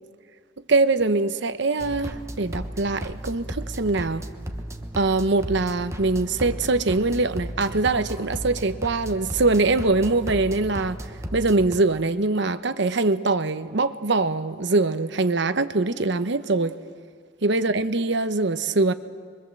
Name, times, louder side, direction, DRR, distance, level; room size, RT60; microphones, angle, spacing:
voice 1, 0.7-4.2 5.0-11.0 11.3-16.8 17.4-18.9, right 3 dB, 65° right, 1.0 m, -23 dB
sound 1, 1.8-11.8, equal, 15° right, 1.3 m, -35 dB
25.5 x 23.0 x 7.6 m
head